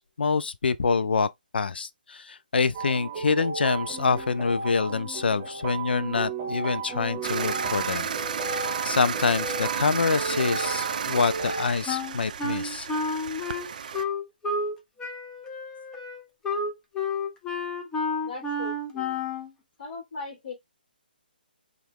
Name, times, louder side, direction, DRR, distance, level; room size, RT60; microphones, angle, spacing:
voice 1, 0.0-8.1 8.4-12.9, left 4 dB, 85° left, 0.3 m, -26 dB
sound 1, 2.7-11.7, right 4 dB, 30° right, 0.8 m, -34 dB
sound 2, 7.2-14.0, right 7 dB, 55° right, 0.4 m, -32 dB
Wind instrument woodwind instrument, 11.9-14.7 15.0-19.5, left 3 dB, 10° left, 0.5 m, -30 dB
voice 2, 18.2-19.3 19.8-20.5, left 4 dB, 50° left, 1.8 m, -39 dB
2.8 x 2.5 x 3.3 m
hypercardioid pair, 155°, 5 cm